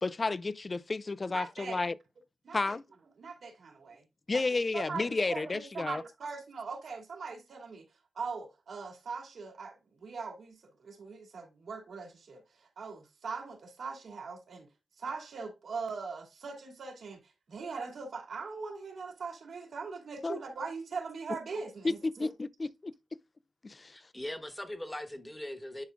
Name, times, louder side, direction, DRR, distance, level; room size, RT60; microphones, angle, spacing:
voice 1, 0.0-1.9 2.5-2.8 4.3-6.0 20.2-20.4 21.8-22.9 23.6-23.9, left 3 dB, 35° left, 0.4 m, -32 dB
voice 2, 1.3-1.8 2.4-2.7 3.2-4.5 4.7-14.7 15.0-22.3, right 4 dB, 75° right, 2.4 m, -41 dB
voice 3, 23.9-25.8, left 1 dB, 10° left, 1.1 m, -40 dB
10.5 x 4.9 x 2.4 m
wide cardioid pair, 105°, 0 cm